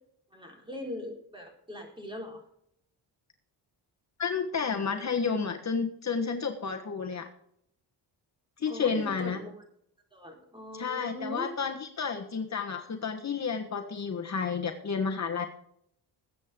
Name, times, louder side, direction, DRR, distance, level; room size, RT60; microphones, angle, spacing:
voice 1, 0.3-2.4 8.7-9.5 10.1-11.5, left 1 dB, 10° right, 1 dB, 4.1 m, -40 dB
voice 2, 4.2-7.3 8.6-9.4 10.7-15.5, left 5 dB, 40° left, 4 dB, 1.4 m, -31 dB
20.5 x 8.5 x 3.7 m, 0.70 s
wide cardioid pair, 130°, 41 cm